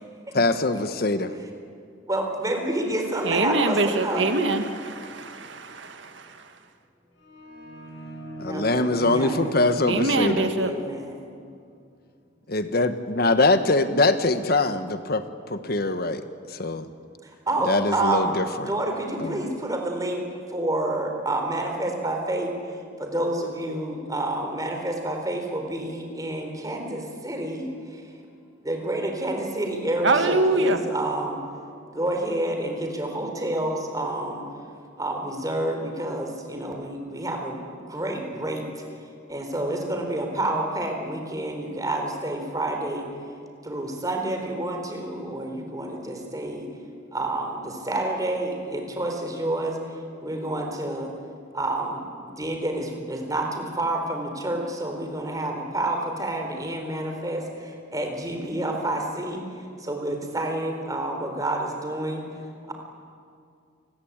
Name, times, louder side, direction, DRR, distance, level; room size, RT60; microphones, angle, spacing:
voice 1, 0.3-1.3 8.4-10.5 12.5-15.2 15.5-16.2 16.5-16.9 17.7-18.7 19.2-19.4, left 2 dB, 55° left, 10 dB, 1.3 m, -23 dB
voice 2, 2.1-4.2 8.5-9.5 10.6-11.2 17.2-18.4 18.7-28.0 28.6-31.4 31.9-34.4 35.0-38.8 39.3-43.1 43.6-46.7 47.1-51.1 51.5-62.3 62.7-62.8, right 1 dB, 20° right, 3 dB, 4.2 m, -29 dB
voice 3, 3.2-6.0 9.9-10.7 30.0-30.8, right 2 dB, 75° right, 7 dB, 1.8 m, -23 dB
sound 1, 7.2-11.1, right 1 dB, 85° left, 7.2 m, -39 dB
29.0 x 21.0 x 8.8 m, 2.3 s
head